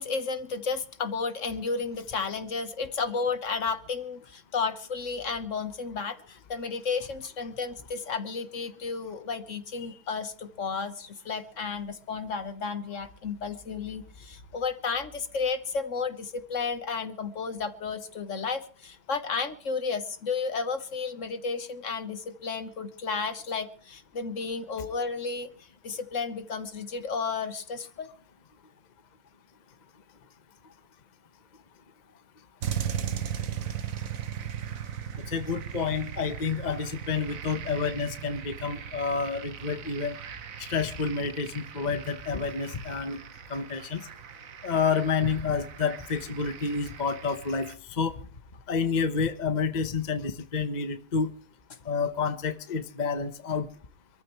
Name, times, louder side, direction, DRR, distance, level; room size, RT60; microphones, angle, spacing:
voice 1, 0.0-28.1, left 5 dB, 55° left, 1.5 m, -32 dB
sound 1, 32.6-47.7, right 9 dB, 60° right, 1.4 m, -38 dB
voice 2, 35.3-40.2 40.6-43.2 43.5-44.1 44.6-48.1 48.7-51.3 51.8-53.7, left 5 dB, 35° left, 1.0 m, -29 dB
26.5 x 14.0 x 3.1 m
omnidirectional pair, 1.6 m